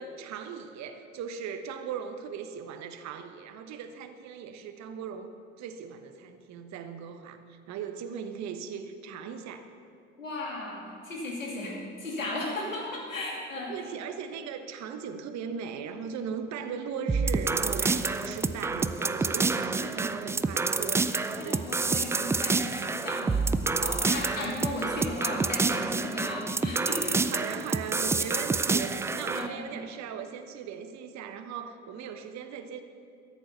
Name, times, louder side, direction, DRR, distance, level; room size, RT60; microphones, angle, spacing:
voice 1, 0.0-9.7 13.6-21.1 21.4-21.7 27.3-32.8, right 7 dB, 45° right, 8 dB, 1.1 m, -38 dB
voice 2, 10.2-13.7 21.4-23.4 23.8-27.2 29.3-29.6, left 2 dB, 90° left, -3 dB, 2.7 m, -35 dB
sound 1, 17.1-29.5, right 3 dB, 10° right, 0.3 m, -28 dB
14.0 x 8.5 x 6.8 m, 2.4 s
figure-of-eight pair, 65°, 38 cm